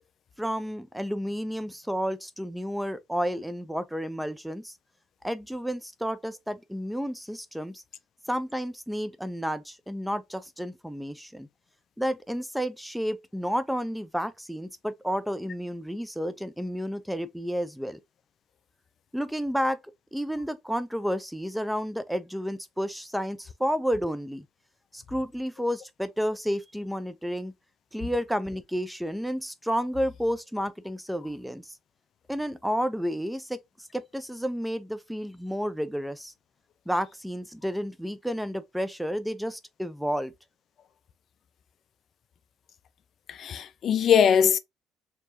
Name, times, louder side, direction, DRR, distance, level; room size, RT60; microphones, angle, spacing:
voice 1, 0.4-4.7 5.2-7.8 8.3-11.5 12.0-18.0 19.1-19.8 20.1-24.5 24.9-27.5 27.9-31.8 32.3-36.3 36.9-40.3, equal, ahead, 0.5 m, -31 dB
voice 2, 43.3-44.6, left 8 dB, 50° left, 0.5 m, -21 dB
4.5 x 3.0 x 2.6 m
cardioid pair, 105°, 0 cm